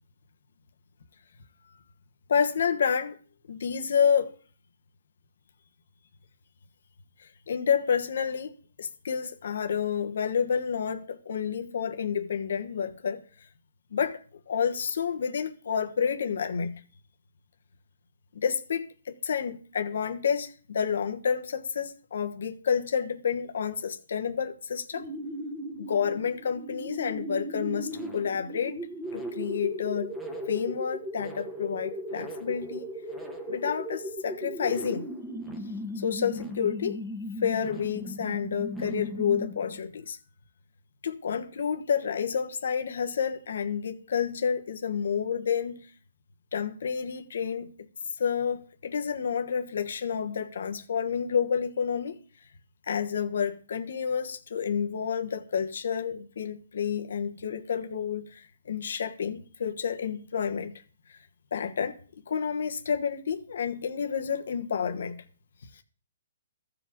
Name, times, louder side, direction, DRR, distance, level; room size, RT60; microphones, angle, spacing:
voice 1, 2.3-3.1 3.5-4.3 7.2-8.5 8.8-13.2 13.9-14.2 14.5-16.8 18.3-25.1 25.8-28.8 29.1-30.1 30.5-32.9 33.5-35.1 36.0-37.0 37.4-40.2 41.0-45.9 46.5-47.7 48.2-52.2 52.9-60.7 61.5-65.2, left 7 dB, 70° left, 1.2 m, -29 dB
sound 1, 24.9-39.8, equal, 5° right, 1.2 m, -37 dB
15.0 x 5.0 x 3.7 m
hypercardioid pair, 150°, 0 cm